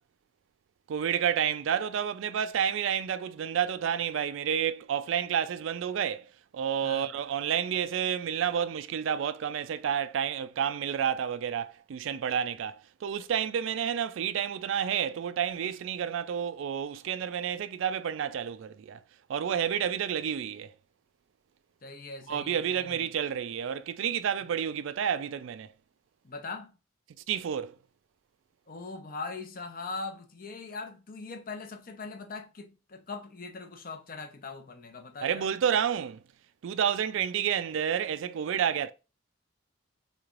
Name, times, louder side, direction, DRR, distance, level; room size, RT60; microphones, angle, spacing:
voice 1, 0.9-6.3 6.5-19.0 19.3-20.7 22.3-25.7 27.3-27.8 35.2-36.2 36.6-38.9, right 8 dB, 70° right, 0.3 m, -30 dB
voice 2, 6.8-7.1 21.8-23.1 26.2-26.8 28.7-35.5, left 4 dB, 45° left, 0.6 m, -41 dB
3.4 x 3.2 x 2.4 m
head